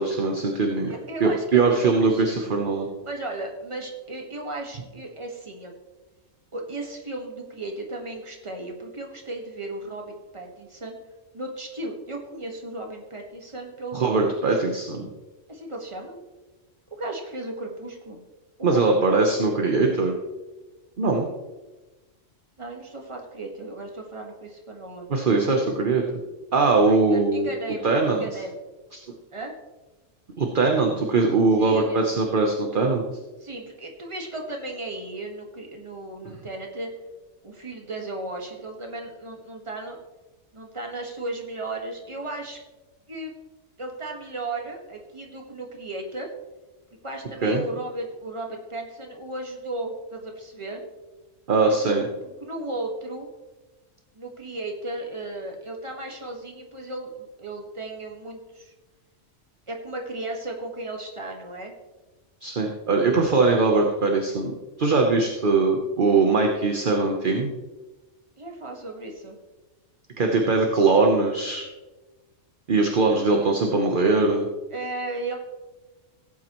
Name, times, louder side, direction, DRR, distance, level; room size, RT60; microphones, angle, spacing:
voice 1, 0.0-2.9 13.9-15.1 18.6-20.1 21.0-21.3 25.1-26.0 26.5-27.5 27.8-28.2 28.9-29.0 30.4-33.0 47.4-47.6 51.5-52.1 62.4-64.5 64.8-67.5 70.2-71.6 72.7-74.5, right 3 dB, 45° right, 2 dB, 1.0 m, -21 dB
voice 2, 0.9-2.4 3.0-5.7 6.5-11.0 11.3-14.6 15.5-16.2 17.0-18.2 18.6-19.1 22.6-25.1 25.5-25.7 26.9-28.5 29.3-29.5 31.6-32.1 33.4-36.9 37.4-40.0 40.5-42.6 43.1-43.3 43.8-46.3 47.0-50.8 51.8-52.0 52.4-53.3 54.1-58.7 59.7-61.7 63.3-63.6 68.4-69.4 74.7-75.4, right 2 dB, 25° right, 1 dB, 1.6 m, -35 dB
16.5 x 8.6 x 3.0 m, 1.2 s
omnidirectional pair, 1.3 m